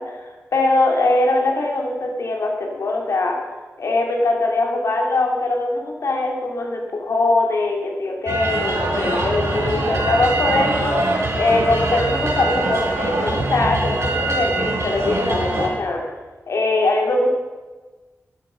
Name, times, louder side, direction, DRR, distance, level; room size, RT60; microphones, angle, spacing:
voice 1, 0.0-3.4 3.8-11.0 11.3-16.0 16.5-17.3, left 2 dB, 75° left, 1 dB, 2.7 m, -21 dB
sound 1, 8.3-15.7, right 2 dB, 65° right, 4.2 m, -23 dB
13.0 x 12.5 x 5.2 m, 1.3 s
wide cardioid pair, 130°, 5 cm